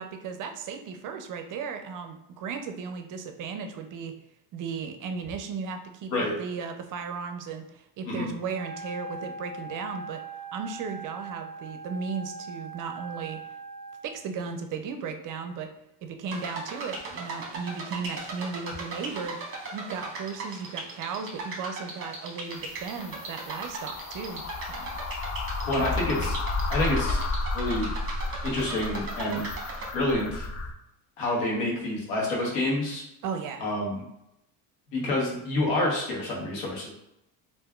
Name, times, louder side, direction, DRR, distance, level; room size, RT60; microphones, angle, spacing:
voice 1, 0.0-4.1 4.5-6.1 6.4-10.2 10.5-13.4 14.0-15.7 16.0-19.4 19.7-24.4 24.7-24.9 25.7-26.3 33.2-33.6, right 5 dB, 50° right, 6 dB, 0.5 m, -35 dB
Wind instrument woodwind instrument, 8.5-14.1, right 3 dB, 5° left, 1.3 m, -41 dB
sound 1, 16.3-29.9, right 3 dB, 30° right, 0.9 m, -38 dB
sound 2, 22.6-30.7, left 3 dB, 40° left, 0.4 m, -32 dB
voice 2, 25.7-26.3 26.7-27.2 27.5-27.9 28.4-29.4 29.9-30.5 31.2-33.0 33.6-34.0 34.9-36.9, left 1 dB, 85° left, -2 dB, 1.1 m, -28 dB
3.4 x 2.5 x 2.3 m, 0.82 s
cardioid pair, 110°, 41 cm